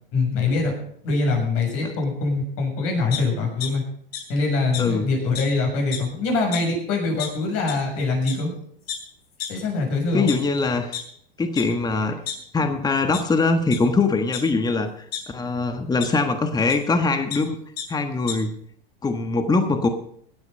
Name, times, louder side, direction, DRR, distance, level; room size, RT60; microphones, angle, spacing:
voice 1, 0.1-0.7 1.0-3.8 4.3-8.5 9.5-10.3, left 3 dB, 45° left, 1 dB, 6.6 m, -23 dB
sound 1, 3.1-3.7 4.1-4.2 4.7-4.8 5.3-5.4 5.8-6.1 6.5-6.6 7.2-7.3 7.7-7.8 8.3-8.4 8.9-9.0 9.4-9.5 10.1-11.0 11.6-11.7 12.0-12.7 13.1-13.2 13.7-13.8 14.3-15.2 16.0-16.1 16.7-16.8 17.1-17.4 17.8-17.9 18.1-18.3, left 9 dB, 75° left, 3.7 m, -31 dB
voice 2, 10.1-11.0 11.4-12.2 12.5-17.6 17.9-18.5 19.0-19.9, left 3 dB, 15° left, 7 dB, 1.3 m, -22 dB
17.5 x 9.6 x 5.4 m, 0.64 s
hypercardioid pair, 110°, 30 cm